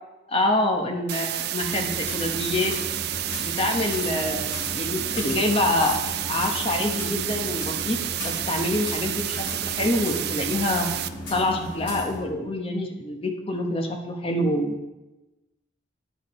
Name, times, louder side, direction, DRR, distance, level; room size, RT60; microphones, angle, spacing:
voice 1, 0.3-2.7 3.4-10.9 11.3-14.8, left 1 dB, 30° left, 3 dB, 0.9 m, -26 dB
sound 1, 1.1-11.1, right 13 dB, 55° right, 0.3 m, -30 dB
sound 2, 1.6-12.2, left 1 dB, 70° left, 3.1 m, -36 dB
10.0 x 4.9 x 4.2 m, 1.0 s
head